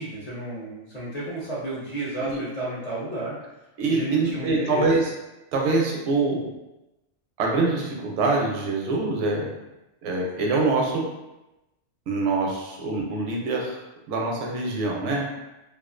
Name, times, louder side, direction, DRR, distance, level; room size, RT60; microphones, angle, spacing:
voice 1, 0.0-3.4 3.9-4.9, right 2 dB, 45° left, -8 dB, 0.5 m, -32 dB
voice 2, 3.8-5.1 5.5-6.5 7.4-9.5 10.0-11.1 12.1-13.8 14.1-15.2, right 3 dB, 80° right, -1 dB, 0.9 m, -24 dB
2.3 x 2.3 x 2.4 m, 0.98 s
omnidirectional pair, 1.3 m